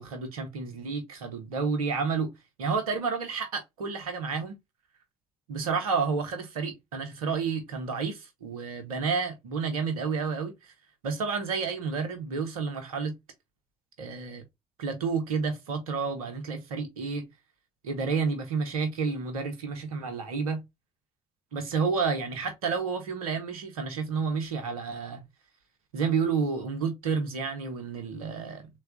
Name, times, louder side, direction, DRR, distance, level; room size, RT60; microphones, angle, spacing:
voice 1, 0.0-2.3 2.6-4.5 5.5-10.5 11.0-13.2 14.0-14.4 14.8-17.2 17.8-20.6 21.5-25.2 25.9-28.7, right 5 dB, 85° right, 0.8 m, -30 dB
3.3 x 2.4 x 3.7 m
hypercardioid pair, 50°, 18 cm